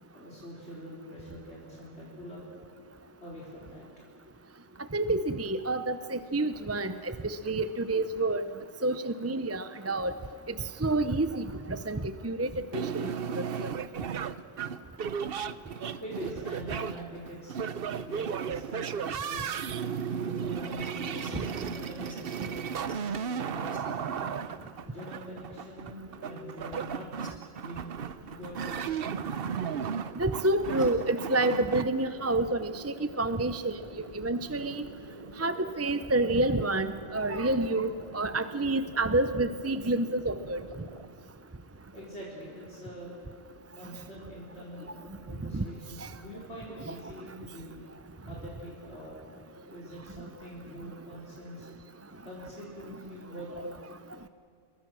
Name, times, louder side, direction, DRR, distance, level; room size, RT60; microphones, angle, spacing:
voice 1, 0.1-2.4 3.2-3.8 16.0-17.7 17.9-19.4 20.1-24.4 24.9-27.1 27.6-27.9 28.3-29.0 41.9-43.2 43.7-47.8 48.3-51.8 52.2-53.7, equal, 85° left, -5 dB, 4.3 m, -44 dB
voice 2, 4.9-8.4 8.8-10.1 10.8-13.7 30.1-33.8 34.1-34.9 35.4-40.6 45.5-45.6 46.0-46.1 46.9-47.0 53.6-53.7, right 2 dB, 15° right, 11 dB, 0.6 m, -29 dB
sound 1, 12.7-31.8, right 7 dB, 65° right, 0.9 m, -35 dB
sound 2, 20.9-22.9 23.4-23.8 24.3-24.7 25.8-28.1 29.2-29.9 30.2-31.7, left 1 dB, 5° left, 4.1 m, -55 dB
sound 3, 27.9-41.1, right 3 dB, 35° right, 1.3 m, -48 dB
29.0 x 22.5 x 6.3 m, 2.5 s
omnidirectional pair, 1.1 m